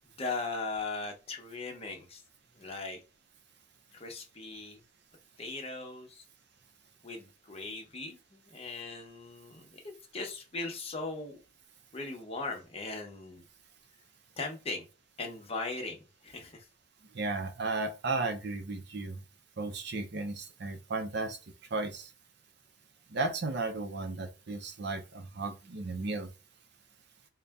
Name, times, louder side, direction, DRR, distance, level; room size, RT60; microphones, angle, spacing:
voice 1, 0.2-2.2 2.5-3.0 3.9-4.8 5.4-6.2 7.0-11.4 11.9-13.5 14.4-14.9 15.2-16.7, left 3 dB, 30° left, 0.9 m, -39 dB
voice 2, 17.1-19.2 19.6-21.4 21.7-22.1 23.1-26.3, right 3 dB, 55° right, 0.6 m, -34 dB
4.0 x 2.2 x 3.5 m
head